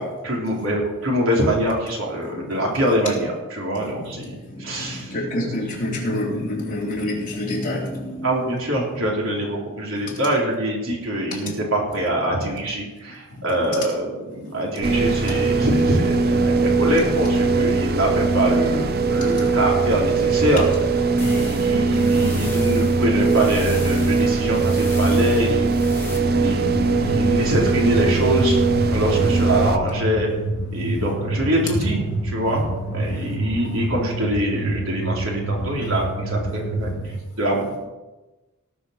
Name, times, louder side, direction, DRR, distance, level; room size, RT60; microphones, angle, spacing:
voice 1, 0.0-5.1 8.2-20.6 21.2-25.9 26.4-28.6 28.9-30.3 30.7-36.9 37.4-37.9, equal, 70° right, -2 dB, 3.8 m, -24 dB
voice 2, 3.8-4.2 4.5-8.4 10.0-10.1 11.4-11.5 13.3-13.5 16.6-16.7 19.3-19.4 21.1-21.6 22.1-22.2 23.3-23.4 24.7-24.9 25.3-25.4 26.1-27.4 28.9-29.3 30.8-31.1 33.1-33.4 35.8-35.9, left 1 dB, 40° left, -4 dB, 3.8 m, -30 dB
sound 1, 14.8-29.8, right 4 dB, 45° right, 0.7 m, -20 dB
sound 2, 21.2-26.2, left 3 dB, 10° left, 3.4 m, -40 dB
sound 3, 26.6-37.1, right 1 dB, 75° left, 3.1 m, -27 dB
18.0 x 6.3 x 6.6 m, 1.1 s
head